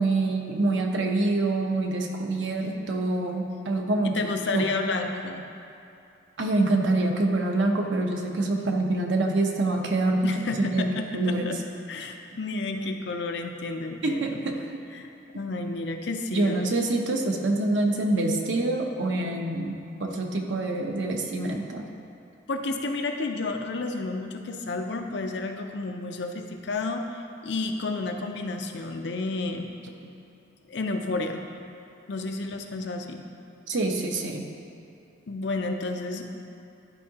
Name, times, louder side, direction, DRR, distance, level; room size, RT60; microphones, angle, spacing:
voice 1, 0.0-4.7 6.4-10.9 11.1-11.6 14.0-14.8 16.3-21.9 30.0-30.1 33.7-34.5, right 2 dB, 85° right, 2 dB, 0.8 m, -26 dB
voice 2, 4.0-5.5 10.2-11.6 11.9-14.4 14.9-15.1 15.3-16.7 22.5-29.7 30.7-31.4 32.1-33.2 35.3-36.4, left 3 dB, 70° left, 4 dB, 0.6 m, -31 dB
11.5 x 4.6 x 2.8 m, 2.8 s
head